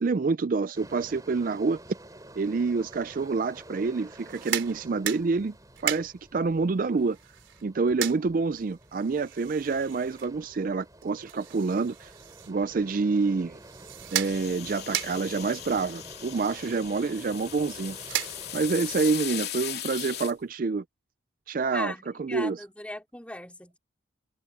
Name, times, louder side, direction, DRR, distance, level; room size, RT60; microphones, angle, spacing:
voice 1, 0.0-1.8 2.4-5.5 5.8-7.2 7.6-12.1 12.5-13.6 14.1-18.0 18.5-20.8 21.5-21.9 22.2-22.6, right 4 dB, 45° right, 0.4 m, -27 dB
sound 1, 0.7-19.2, right 1 dB, 20° right, 3.6 m, -49 dB
sound 2, 4.2-18.8, right 10 dB, 80° right, 3.5 m, -38 dB
sound 3, 14.2-20.3, left 12 dB, 55° left, 2.9 m, -38 dB
voice 2, 21.7-23.8, left 1 dB, 5° left, 2.7 m, -38 dB
head